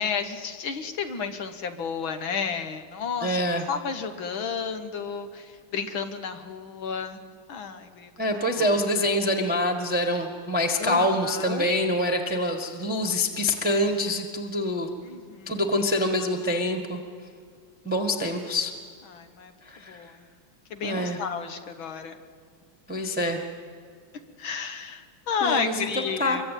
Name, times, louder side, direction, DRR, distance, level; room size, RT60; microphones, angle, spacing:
voice 1, 0.0-3.3 3.7-5.5 5.7-7.2 7.5-8.1 8.5-8.6 10.8-11.6 15.0-15.6 19.1-19.5 19.9-20.1 20.7-22.2 24.4-26.4, left 6 dB, 70° left, 8 dB, 2.2 m, -31 dB
voice 2, 3.2-3.6 8.2-15.0 15.5-17.0 17.8-18.7 19.6-20.1 20.8-21.2 22.9-23.4 25.4-26.4, left 1 dB, 5° right, 1 dB, 1.3 m, -26 dB
24.5 x 23.0 x 9.2 m, 2.2 s
omnidirectional pair, 2.3 m